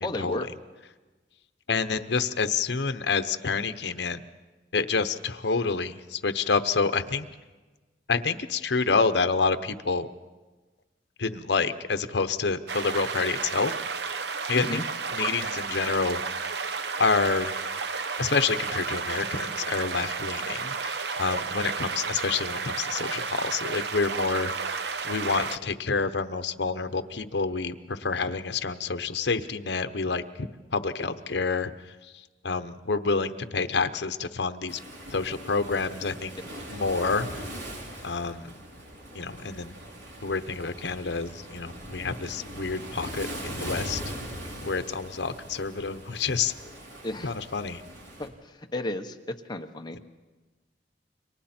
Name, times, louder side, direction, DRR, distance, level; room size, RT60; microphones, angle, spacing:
voice 1, 0.0-0.5 14.5-14.8 36.4-36.5 47.0-47.3 48.2-50.0, left 1 dB, 25° left, 5 dB, 1.1 m, -33 dB
voice 2, 1.7-4.2 4.7-7.3 8.1-10.1 11.2-13.7 14.5-14.8 15.1-16.2 17.0-17.5 18.2-24.5 25.0-31.7 32.4-34.8 35.1-36.4 36.7-37.4 38.0-38.6 39.1-39.7 40.2-44.0 44.6-46.5 47.2-47.8, left 4 dB, 75° left, 10 dB, 0.9 m, -28 dB
sound 1, 12.7-25.6, right 5 dB, 65° right, 0.8 m, -32 dB
Waves surf, 34.7-48.3, equal, 85° right, 4.7 m, -40 dB
29.5 x 24.0 x 4.4 m, 1.3 s
head